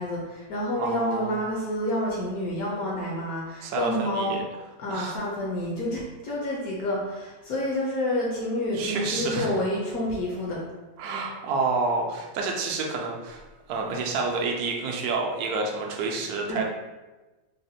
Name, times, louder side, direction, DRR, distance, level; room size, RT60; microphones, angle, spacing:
voice 1, 0.0-4.4 4.8-10.6 16.5-16.6, left 1 dB, 65° left, -4 dB, 1.0 m, -29 dB
voice 2, 0.8-1.4 3.6-4.4 4.9-5.2 8.7-9.6 11.0-16.6, right 3 dB, 70° right, 0 dB, 1.0 m, -29 dB
4.0 x 2.1 x 2.6 m, 1.2 s
omnidirectional pair, 1.9 m